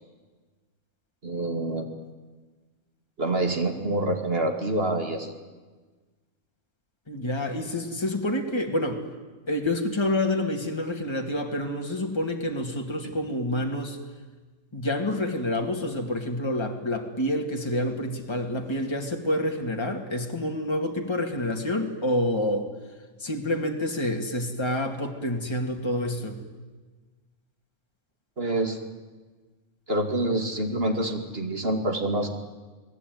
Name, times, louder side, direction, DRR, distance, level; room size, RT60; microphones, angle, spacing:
voice 1, 1.2-1.9 3.2-5.3 28.4-28.8 29.9-32.3, right 1 dB, 50° right, 5 dB, 2.8 m, -26 dB
voice 2, 7.1-9.0 9.5-14.0 14.7-22.7 23.2-26.3, left 1 dB, 20° left, 2 dB, 2.5 m, -28 dB
29.0 x 19.5 x 9.5 m, 1.3 s
omnidirectional pair, 1.3 m